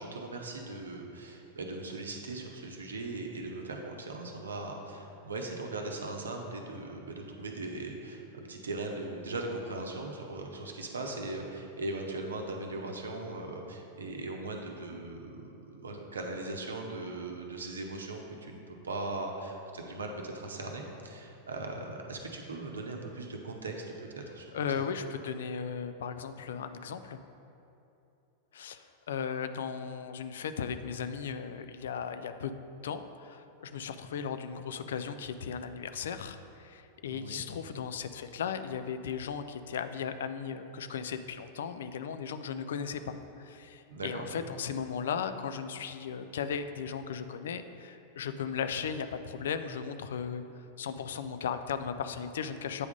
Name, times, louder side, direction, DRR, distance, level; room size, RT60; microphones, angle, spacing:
voice 1, 0.0-24.5 24.8-24.9 37.1-37.4 43.9-44.4, right 2 dB, 70° right, 2 dB, 0.7 m, -39 dB
voice 2, 24.5-27.2 28.5-32.5 32.8-50.4 50.8-52.9, left 7 dB, 60° left, 10 dB, 0.3 m, -36 dB
8.3 x 3.5 x 5.2 m, 2.8 s
figure-of-eight pair, 90°, 0 cm